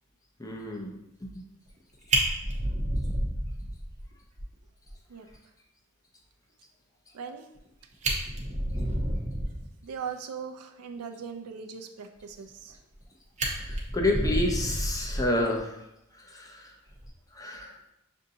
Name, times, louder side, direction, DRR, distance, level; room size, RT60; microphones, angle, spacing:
voice 1, 0.4-0.9 1.2-1.3 13.6-15.9 16.1-16.7 17.3-17.8, left 1 dB, 15° left, 0 dB, 0.5 m, -30 dB
Fire, 1.7-1.8 2.1-4.0 4.4-4.5 4.9-5.0 5.3-5.4 7.5-7.6 7.9-9.7 12.5-13.0 13.4-15.6 16.9-17.1, right 1 dB, 30° right, 0.7 m, -30 dB
voice 2, 7.1-7.5 9.8-12.8, right 6 dB, 85° right, 7 dB, 0.5 m, -39 dB
6.4 x 2.6 x 2.7 m, 0.83 s
head